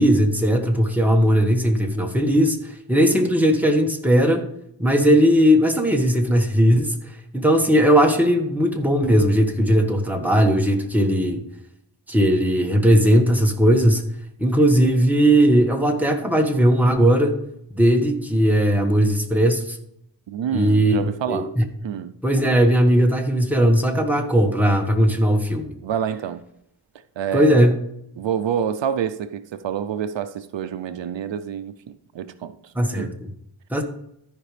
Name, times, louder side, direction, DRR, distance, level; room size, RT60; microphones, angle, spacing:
voice 1, 0.0-4.5 4.8-6.9 7.3-11.4 12.1-14.1 14.4-17.4 17.7-19.8 20.5-21.6 22.2-25.7 27.3-27.7 32.7-33.3 33.7-33.8, equal, 5° right, 1.3 m, -18 dB
voice 2, 20.3-21.5 21.8-22.1 25.8-26.4 27.2-27.6 28.2-33.1, right 8 dB, 75° right, 0.6 m, -27 dB
13.5 x 5.2 x 3.3 m
wide cardioid pair, 80°, 44 cm